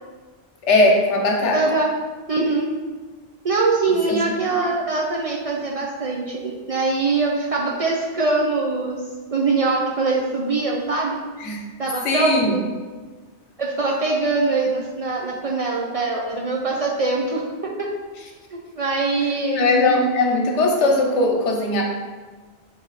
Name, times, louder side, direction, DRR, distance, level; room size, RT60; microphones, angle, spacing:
voice 1, 0.6-1.6 4.1-4.2 11.4-11.6 12.0-12.6 19.5-21.8, left 2 dB, 80° left, 1 dB, 1.1 m, -19 dB
voice 2, 1.5-1.9 2.3-2.7 3.4-9.0 9.3-11.2 11.8-12.6 13.6-17.9 18.5-19.7, right 3 dB, 65° right, -2 dB, 0.3 m, -23 dB
4.6 x 2.7 x 3.9 m, 1.4 s
omnidirectional pair, 1.2 m